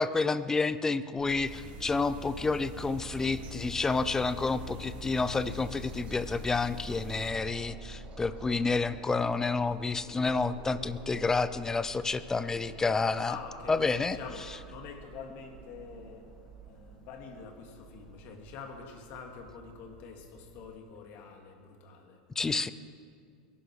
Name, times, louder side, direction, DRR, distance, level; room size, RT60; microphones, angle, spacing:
voice 1, 0.0-13.4 13.7-14.2 22.4-22.7, left 4 dB, 10° left, 14 dB, 0.6 m, -29 dB
sound 1, 1.2-20.8, right 3 dB, 30° right, 1.5 m, -48 dB
sound 2, 1.4-7.3, left 1 dB, 45° right, 2.5 m, -47 dB
voice 2, 13.2-16.3 16.7-22.2, left 5 dB, 50° left, 2 dB, 2.8 m, -46 dB
22.0 x 11.0 x 5.0 m, 2.3 s
supercardioid pair, 125°, 4 cm